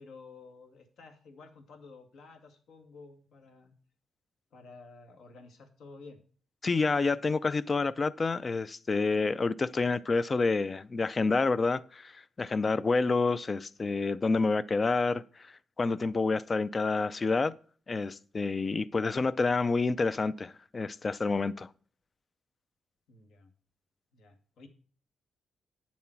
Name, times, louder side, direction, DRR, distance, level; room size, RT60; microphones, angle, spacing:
voice 1, 0.0-3.7 4.5-6.2 23.1-23.5 24.1-24.7, left 4 dB, 70° left, 1.9 m, -52 dB
voice 2, 6.6-15.5 15.8-17.6 17.9-21.7, left 3 dB, 25° left, 0.4 m, -28 dB
9.6 x 7.2 x 4.5 m
cardioid pair, 150°, 0 cm